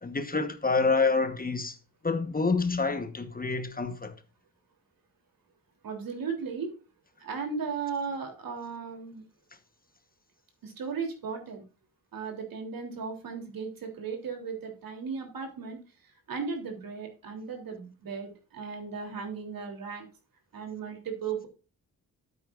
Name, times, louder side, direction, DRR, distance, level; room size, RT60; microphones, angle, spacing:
voice 1, 0.0-1.8 2.0-4.1, left 4 dB, 25° left, 1.2 m, -27 dB
voice 2, 5.8-6.7 7.2-9.2 10.6-11.6 12.1-15.8 16.3-20.0 20.5-21.5, right 5 dB, 70° right, 3.4 m, -36 dB
12.5 x 8.6 x 2.5 m
cardioid pair, 95°, 35 cm